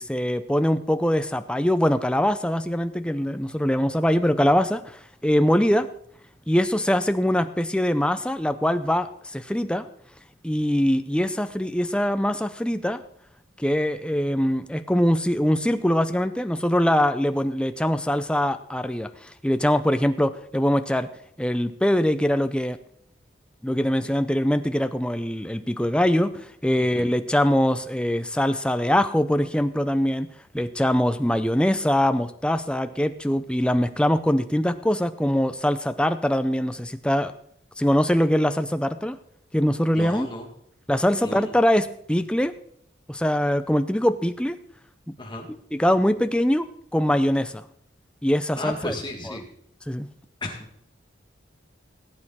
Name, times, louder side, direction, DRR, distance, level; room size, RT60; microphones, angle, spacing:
voice 1, 0.0-5.9 6.5-9.9 10.4-13.0 13.6-21.1 21.4-22.8 23.6-30.3 30.5-37.3 37.8-39.2 39.5-40.3 40.9-42.5 43.1-44.6 45.7-46.7 46.9-47.6 48.2-48.9 49.9-50.1, equal, 5° left, 10 dB, 0.5 m, -23 dB
voice 2, 26.8-27.1 39.9-40.5 41.2-41.5 45.2-45.5 48.6-49.4 50.4-50.7, left 1 dB, 25° left, 2 dB, 2.0 m, -34 dB
19.0 x 8.8 x 4.2 m, 0.70 s
head